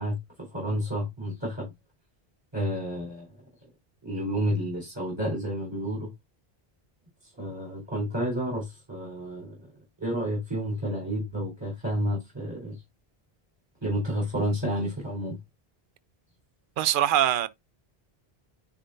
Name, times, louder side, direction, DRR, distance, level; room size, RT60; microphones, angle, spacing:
voice 1, 0.0-1.7 2.5-3.3 4.0-6.1 7.3-9.7 10.0-12.8 13.8-15.4, equal, 25° right, 4.2 m, -30 dB
voice 2, 16.8-17.5, right 11 dB, 60° right, 0.7 m, -22 dB
10.0 x 3.7 x 2.6 m
omnidirectional pair, 1.0 m